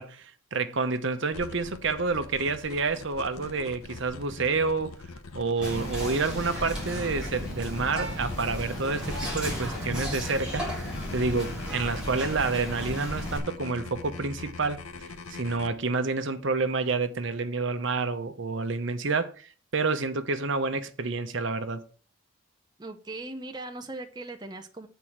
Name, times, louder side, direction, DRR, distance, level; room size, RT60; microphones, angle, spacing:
voice 1, 0.0-4.9 5.3-9.1 9.3-10.6 11.1-14.8 15.3-21.8, right 4 dB, 60° right, 0.9 m, -29 dB
sound 1, 1.3-15.7, left 3 dB, 85° left, 1.0 m, -42 dB
Whispering, 5.6-13.4, equal, 5° right, 3.2 m, -34 dB
voice 2, 22.8-24.9, right 2 dB, 20° right, 0.7 m, -39 dB
8.2 x 4.6 x 7.3 m
head